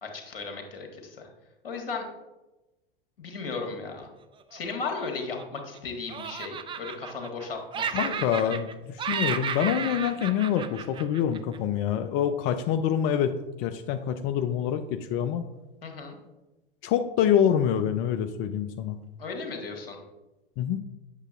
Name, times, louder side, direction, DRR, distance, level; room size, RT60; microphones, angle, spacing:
voice 1, 0.0-1.3 1.6-2.0 3.2-4.1 4.5-8.6 15.8-16.2 19.2-20.0, left 4 dB, 80° left, 3 dB, 1.5 m, -36 dB
Laughter, 4.5-5.8 6.1-7.5 7.7-8.7 9.0-11.6, right 7 dB, 20° right, 0.4 m, -33 dB
voice 2, 7.9-15.4 16.8-19.0 20.6-20.8, left 9 dB, 40° left, 8 dB, 0.5 m, -26 dB
8.1 x 6.4 x 2.4 m, 1.0 s
hypercardioid pair, 90°, 29 cm